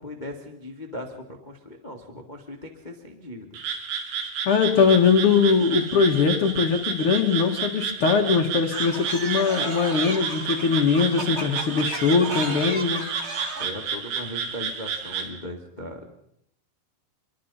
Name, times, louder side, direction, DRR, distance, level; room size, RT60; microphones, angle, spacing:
voice 1, 0.0-3.6 13.6-16.1, left 1 dB, 50° left, 3 dB, 0.5 m, -38 dB
Frog, 3.5-15.3, right 6 dB, 80° right, 4.6 m, -31 dB
voice 2, 4.4-13.1, left 5 dB, 80° left, 2 dB, 1.2 m, -21 dB
sound 1, 8.7-13.7, right 2 dB, 45° right, 0.8 m, -34 dB
26.5 x 22.5 x 5.6 m, 0.74 s
omnidirectional pair, 5.2 m